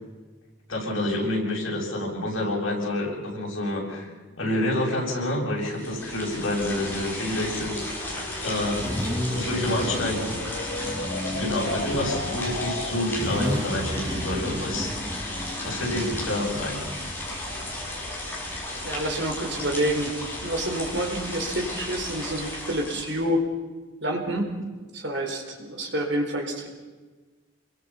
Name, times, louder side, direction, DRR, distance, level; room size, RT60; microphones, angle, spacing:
voice 1, 0.7-4.1 4.4-7.8 8.4-8.9 9.3-10.4 11.3-14.9 15.6-16.9, left 1 dB, 70° left, -2 dB, 7.4 m, -28 dB
sound 1, 3.1-13.3, left 2 dB, 50° left, 2.5 m, -39 dB
sound 2, 5.6-23.3, left 1 dB, 10° left, 5.7 m, -34 dB
Car / Idling / Accelerating revving vroom, 7.1-18.7, equal, 15° right, 1.8 m, -34 dB
voice 2, 18.8-23.4 24.0-24.5 24.9-26.7, right 1 dB, 55° right, 2 dB, 4.2 m, -28 dB
28.0 x 23.0 x 5.7 m, 1.3 s
head